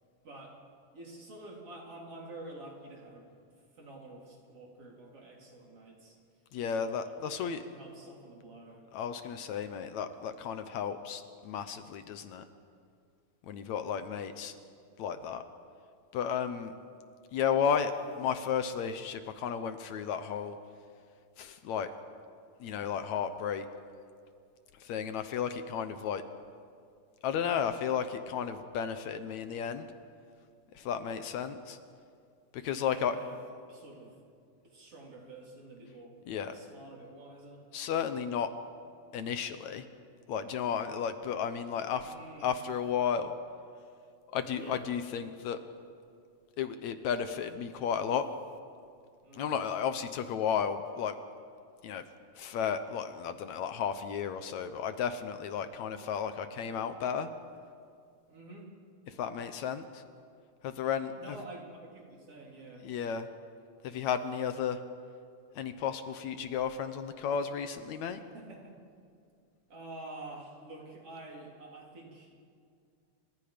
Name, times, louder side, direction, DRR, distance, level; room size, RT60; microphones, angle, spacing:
voice 1, 0.2-0.6 0.9-3.3 3.7-6.2 6.6-8.8 32.9-33.4 33.7-34.2 34.6-37.7 42.0-42.5 44.5-44.8 49.2-49.6 58.3-58.7 61.2-62.9 68.2-68.8 69.7-72.4, right 2 dB, 50° right, -2 dB, 4.8 m, -48 dB
voice 2, 6.5-7.6 8.9-12.4 13.4-14.5 15.0-15.4 16.1-16.7 17.3-20.6 21.4-21.9 22.6-23.7 24.8-26.2 27.2-29.9 30.8-31.8 32.5-33.2 36.3-36.6 37.7-38.5 39.1-39.9 40.3-42.1 42.4-43.3 44.3-45.6 46.6-48.3 49.3-51.1 51.8-52.0 52.4-57.3 59.1-60.0 60.6-61.4 62.8-63.3 63.8-64.8 65.6-68.2, left 7 dB, 70° left, 9 dB, 2.1 m, -33 dB
29.5 x 25.5 x 5.2 m, 2.3 s
omnidirectional pair, 3.5 m